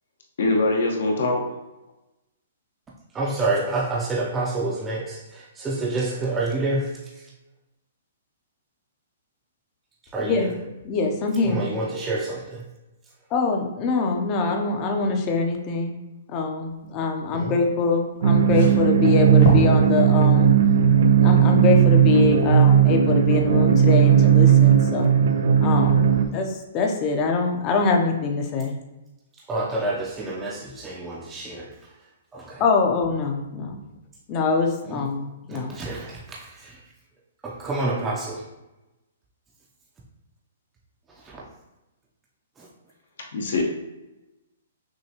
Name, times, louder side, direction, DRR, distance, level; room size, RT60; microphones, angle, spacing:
voice 1, 0.4-1.4 43.3-43.6, left 2 dB, 70° left, 0 dB, 1.1 m, -22 dB
voice 2, 3.1-7.0 10.1-10.5 11.5-12.6 17.3-17.5 29.5-31.7 32.3-32.6 34.9-35.1 35.5-36.8 37.4-38.5 41.2-41.4 42.6-42.7, right 2 dB, 15° right, -4 dB, 0.6 m, -28 dB
voice 3, 10.2-11.8 13.3-16.0 16.3-20.5 21.2-25.1 25.6-28.8 32.6-33.8 34.3-35.7, left 4 dB, 30° left, 3 dB, 0.6 m, -24 dB
sound 1, 18.2-19.8 20.2-20.4 21.5-21.6, left 1 dB, 55° left, 1.4 m, -26 dB
sound 2, 18.2-26.3, right 8 dB, 75° right, 0.4 m, -17 dB
6.1 x 2.3 x 2.9 m, 1.0 s
hypercardioid pair, 155°, 0 cm